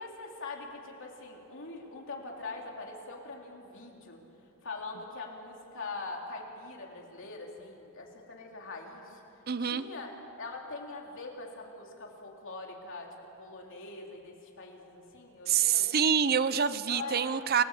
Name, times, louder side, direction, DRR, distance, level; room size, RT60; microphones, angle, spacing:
voice 1, 0.0-4.2 4.6-9.2 9.6-13.1 13.4-16.0 16.9-17.5, left 3 dB, 60° left, 0 dB, 3.8 m, -43 dB
voice 2, 9.5-9.8 15.5-17.6, right 7 dB, 45° right, 14 dB, 0.6 m, -26 dB
28.5 x 19.0 x 8.5 m, 3.0 s
head